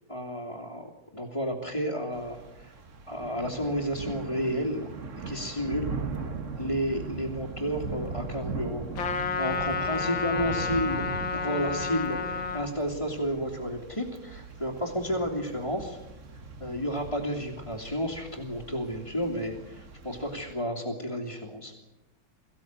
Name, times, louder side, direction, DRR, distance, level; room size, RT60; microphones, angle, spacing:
voice 1, 0.1-2.8 3.1-4.9 5.3-5.9 6.6-8.9 9.4-11.0 11.3-16.0 16.6-21.7, equal, 15° left, -4 dB, 2.7 m, -31 dB
Thunder / Rain, 2.1-20.5, right 4 dB, 40° right, 1.6 m, -40 dB
Trumpet, 9.0-12.7, left 6 dB, 75° left, 2.1 m, -31 dB
23.0 x 15.5 x 9.6 m, 1.0 s
omnidirectional pair, 2.2 m